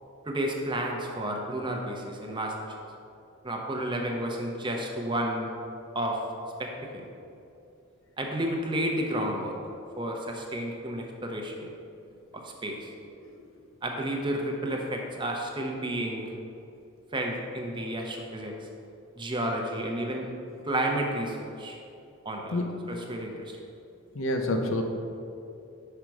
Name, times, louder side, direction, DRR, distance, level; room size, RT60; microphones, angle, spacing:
voice 1, 0.2-2.5 3.4-5.5 5.9-6.2 6.6-7.1 8.2-9.6 10.0-11.7 12.3-12.9 13.8-16.3 17.1-18.5 19.2-20.3 20.6-21.8 22.2-22.6 22.9-23.6, right 1 dB, 25° right, 1 dB, 0.7 m, -31 dB
voice 2, 24.1-24.8, left 1 dB, 70° left, 4 dB, 0.6 m, -27 dB
5.7 x 5.1 x 4.7 m, 2.6 s
head